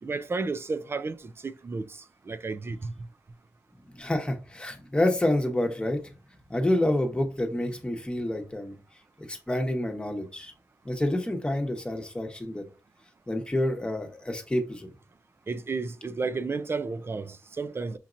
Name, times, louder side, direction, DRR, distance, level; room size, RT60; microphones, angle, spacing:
voice 1, 0.0-2.9 15.5-18.0, right 4 dB, 45° right, 0.4 m, -32 dB
voice 2, 3.9-6.0 6.5-8.7 9.3-10.5 10.8-12.6 13.3-14.9, left 1 dB, 15° left, 1.1 m, -28 dB
5.9 x 2.8 x 2.5 m
cardioid pair, 70°, 6 cm